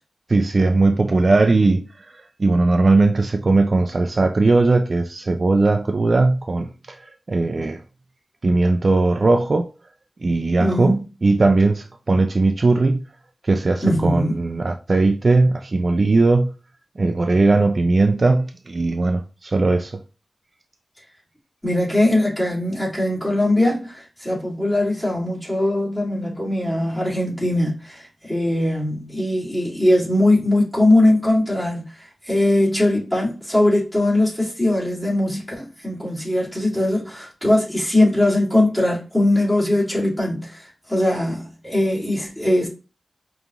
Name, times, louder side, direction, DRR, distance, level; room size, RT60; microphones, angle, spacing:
voice 1, 0.3-7.8 8.4-9.7 10.2-13.1 13.4-16.5 17.0-20.0, right 3 dB, 45° right, 0.3 m, -18 dB
voice 2, 10.6-11.0 13.8-14.4 21.6-42.7, left 1 dB, 15° left, 2.2 m, -20 dB
5.1 x 2.9 x 2.4 m
wide cardioid pair, 115°, 0 cm